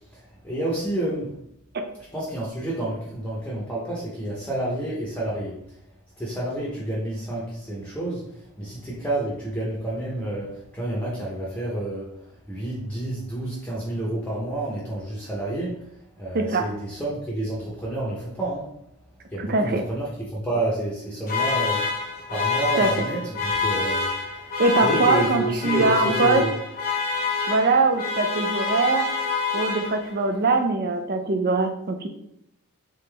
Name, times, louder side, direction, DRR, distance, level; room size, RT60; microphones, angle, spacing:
voice 1, 0.1-1.3 2.1-5.6 6.2-15.9 16.2-18.7 19.3-21.9 22.3-24.5 24.8-26.6, right 1 dB, 5° left, -6 dB, 0.8 m, -29 dB
voice 2, 19.4-19.8 22.8-22.9 24.6-26.4 27.5-29.1 29.5-32.1, right 3 dB, 45° right, 6 dB, 0.5 m, -22 dB
sound 1, 21.3-30.3, left 4 dB, 40° left, 0.9 m, -27 dB
3.8 x 3.7 x 3.3 m, 0.77 s
head